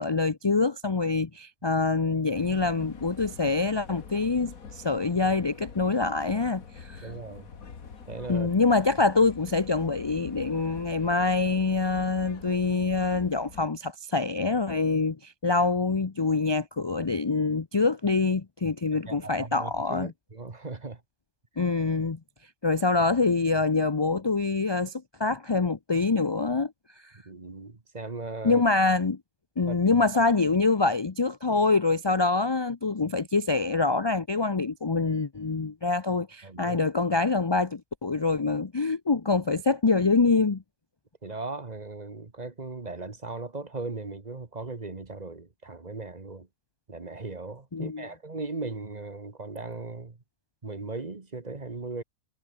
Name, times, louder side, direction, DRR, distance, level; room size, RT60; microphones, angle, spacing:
voice 1, 0.0-7.1 8.3-20.1 21.6-22.2 22.6-26.7 27.0-27.1 28.4-29.2 29.6-40.6 47.7-48.1, left 3 dB, 25° left, 0.6 m, -25 dB
sound 1, 2.3-13.7, left 6 dB, 85° left, 2.3 m, -45 dB
voice 2, 7.0-7.5 8.1-8.5 19.1-21.0 27.1-28.6 29.7-30.0 36.4-36.8 41.2-46.5 46.9-50.2 50.6-52.0, right 3 dB, 30° right, 1.6 m, -38 dB
omnidirectional pair, 1.4 m